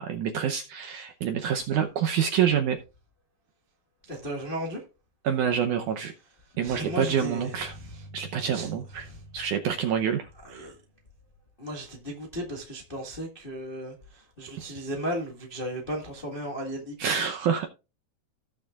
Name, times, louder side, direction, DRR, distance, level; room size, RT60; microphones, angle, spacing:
voice 1, 0.0-2.8 5.2-6.1 6.6-7.7 8.1-9.1 9.3-10.7 17.0-17.7, right 8 dB, 80° right, 1.8 m, -27 dB
voice 2, 4.1-4.8 6.6-7.6 7.9-8.0 8.5-8.7 9.0-9.2 10.4-10.7 11.6-17.1, equal, 80° left, 0.5 m, -35 dB
sound 1, 6.8-11.0, equal, 5° right, 3.7 m, -48 dB
17.0 x 6.7 x 2.4 m
omnidirectional pair, 4.6 m